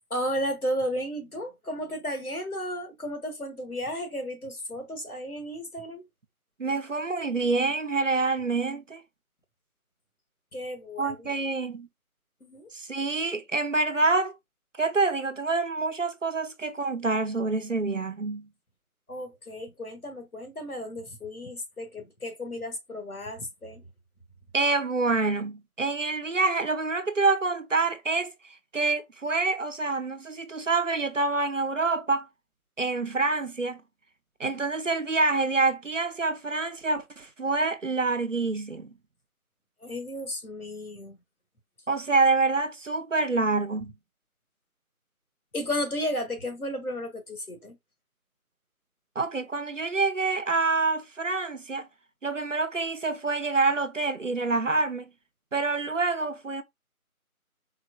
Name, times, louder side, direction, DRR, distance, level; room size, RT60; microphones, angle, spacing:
voice 1, 0.1-6.1 10.5-11.3 12.4-12.7 19.1-23.8 39.8-41.2 45.5-47.8, equal, 75° left, 1.4 m, -33 dB
voice 2, 6.6-9.0 11.0-11.9 12.7-14.4 14.8-18.5 24.5-28.3 28.7-32.3 32.8-33.8 34.4-38.9 41.9-43.9 49.2-51.9 52.2-55.1 55.5-56.6, right 3 dB, 60° right, 0.5 m, -27 dB
4.3 x 2.5 x 2.3 m
figure-of-eight pair, 175°, 44 cm